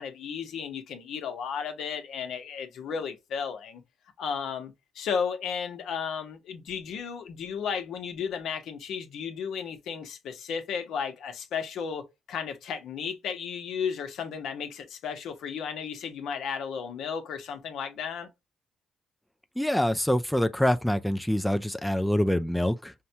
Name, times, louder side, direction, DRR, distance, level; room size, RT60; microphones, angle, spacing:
voice 1, 0.0-3.8 4.2-18.3, left 6 dB, 75° left, 0.9 m, -34 dB
voice 2, 19.6-22.9, left 1 dB, 5° left, 0.3 m, -25 dB
5.5 x 2.2 x 2.7 m
cardioid pair, 90°, 0 cm